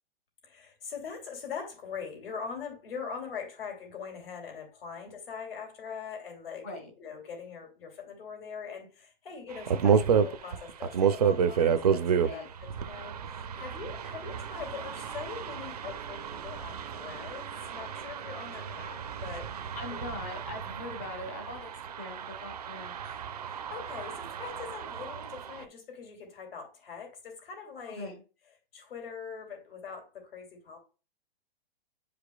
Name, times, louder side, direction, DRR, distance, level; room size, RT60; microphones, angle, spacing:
voice 1, 0.4-12.1 12.3-12.4 12.8-20.0 23.4-28.1 28.7-30.8, left 6 dB, 70° left, 2.8 m, -42 dB
sound 1, 9.5-25.6, right 7 dB, 40° right, 0.4 m, -31 dB
voice 2, 19.7-23.0 28.0-28.2, left 2 dB, 15° left, 0.5 m, -41 dB
9.5 x 5.0 x 2.3 m
hypercardioid pair, 175°, 30 cm